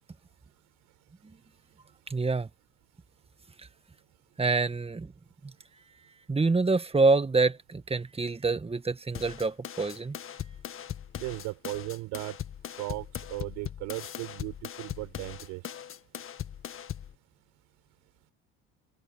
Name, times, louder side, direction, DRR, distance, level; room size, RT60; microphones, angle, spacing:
voice 1, 2.1-2.5 3.6-3.7 4.4-5.1 5.4-5.5 6.3-10.2, right 3 dB, 20° right, 1.7 m, -26 dB
sound 1, 9.1-17.1, left 9 dB, 45° left, 1.7 m, -40 dB
voice 2, 11.2-12.4 12.8-15.6, right 23 dB, 80° right, 7.2 m, -37 dB
open air
supercardioid pair, 75°, 29 cm